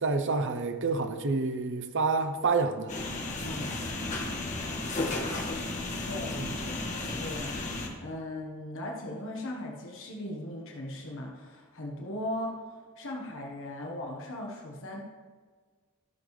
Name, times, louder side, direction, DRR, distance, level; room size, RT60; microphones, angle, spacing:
voice 1, 0.0-3.0 5.0-5.2 6.4-6.5, right 4 dB, 60° right, 8 dB, 0.8 m, -28 dB
sound 1, 2.9-7.9, left 2 dB, 35° left, 1.6 m, -33 dB
voice 2, 3.4-3.7 6.0-15.0, left 1 dB, 65° left, -1 dB, 1.4 m, -38 dB
13.5 x 6.9 x 3.3 m, 1.5 s
head